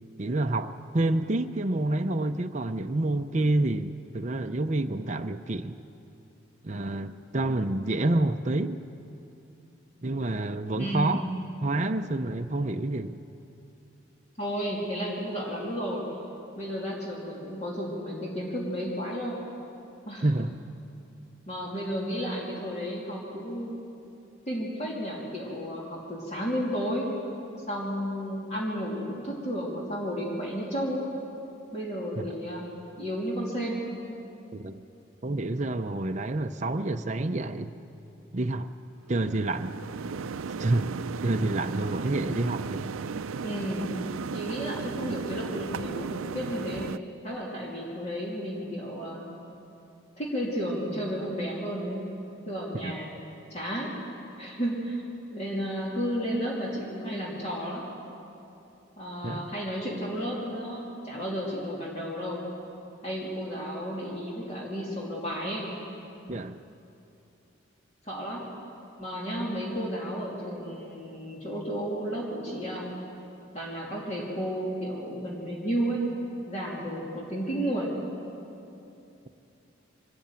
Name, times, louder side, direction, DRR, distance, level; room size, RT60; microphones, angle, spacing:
voice 1, 0.2-5.8 6.6-8.8 10.0-11.2 11.6-13.2 20.2-20.6 32.2-32.3 34.5-34.8 35.2-37.7 38.3-38.7 39.1-39.7 40.6-41.0 41.2-42.9 52.8-52.9 59.2-59.5 66.3-66.6, right 2 dB, 35° right, 6 dB, 0.6 m, -28 dB
voice 2, 10.8-11.3 14.4-16.0 16.6-19.4 20.1-20.3 21.5-23.8 24.5-27.1 27.7-31.1 31.7-33.8 43.4-43.9 44.3-46.9 47.2-49.3 50.2-52.0 52.5-53.1 53.5-53.9 54.4-55.0 55.3-57.9 59.0-62.4 63.0-65.7 68.0-68.4 69.0-72.9 73.5-76.0 76.5-77.9, equal, 30° left, -4 dB, 3.0 m, -32 dB
sound 1, 39.2-47.0, right 5 dB, 85° right, 0.5 m, -35 dB
24.0 x 14.0 x 8.9 m, 2.8 s
head